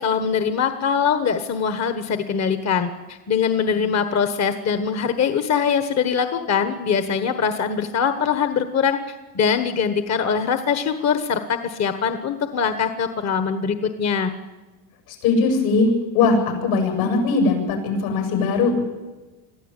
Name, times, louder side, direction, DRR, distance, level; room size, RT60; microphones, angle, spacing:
voice 1, 0.0-9.0 9.3-14.3, left 6 dB, 35° left, 9 dB, 1.3 m, -22 dB
voice 2, 15.1-18.8, left 4 dB, 75° left, 3 dB, 7.6 m, -20 dB
23.0 x 14.0 x 9.1 m, 1.2 s
supercardioid pair, 105°, 48 cm